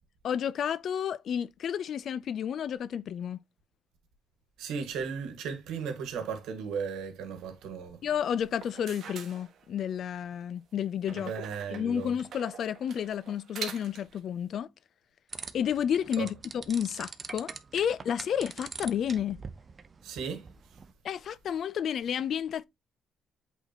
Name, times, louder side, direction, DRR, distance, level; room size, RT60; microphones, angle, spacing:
voice 1, 0.2-3.4 8.0-11.3 11.7-14.7 15.5-19.4 21.0-22.6, left 8 dB, 65° left, 0.5 m, -31 dB
voice 2, 4.6-8.0 11.1-12.1 16.2-16.3 20.0-20.5, right 6 dB, 90° right, 1.7 m, -36 dB
sound 1, 8.5-10.0 11.0-14.2, right 7 dB, 70° right, 1.5 m, -44 dB
sound 2, 15.3-20.9, right 5 dB, 40° right, 0.8 m, -44 dB
8.2 x 4.1 x 2.9 m
cardioid pair, 90°, 0 cm